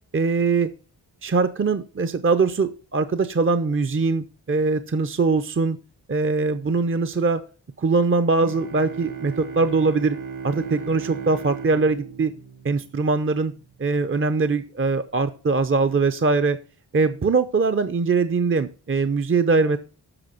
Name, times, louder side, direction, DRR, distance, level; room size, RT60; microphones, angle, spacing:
voice 1, 0.1-0.7 1.2-5.8 6.1-7.4 7.8-10.2 10.4-12.3 12.6-13.5 13.8-16.6 16.9-19.8, right 4 dB, 30° right, 11 dB, 0.7 m, -22 dB
Bowed string instrument, 8.4-13.3, right 5 dB, 50° right, 1.3 m, -36 dB
7.9 x 5.8 x 5.6 m, 0.37 s
cardioid pair, 50°, 41 cm